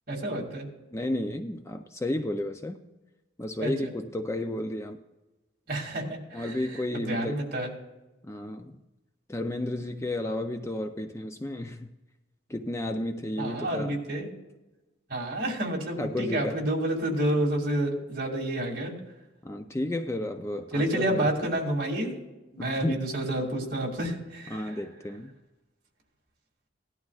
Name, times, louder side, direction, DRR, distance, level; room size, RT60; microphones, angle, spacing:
voice 1, 0.1-0.7 3.6-3.7 5.7-6.5 6.9-7.7 13.4-14.3 15.1-18.9 20.7-22.1 22.5-24.7, right 1 dB, 50° right, -1 dB, 2.5 m, -29 dB
voice 2, 0.9-2.8 3.4-5.0 6.3-7.4 8.2-8.8 9.3-11.9 12.5-14.0 16.0-16.6 19.4-21.3 22.6-23.0 24.5-25.4, left 1 dB, 15° left, 6 dB, 0.4 m, -32 dB
17.5 x 12.0 x 2.4 m, 1.1 s
head